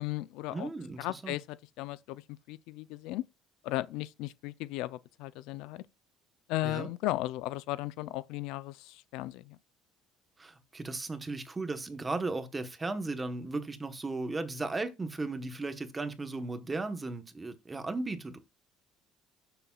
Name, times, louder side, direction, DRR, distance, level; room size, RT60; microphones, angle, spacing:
voice 1, 0.0-0.7 1.0-2.2 2.5-3.2 3.6-5.8 6.5-9.6, left 17 dB, 80° left, 0.4 m, -36 dB
voice 2, 0.5-1.4 6.6-6.9 10.4-18.4, right 3 dB, 15° right, 1.1 m, -36 dB
15.0 x 6.9 x 2.4 m
cardioid pair, 155°, 0 cm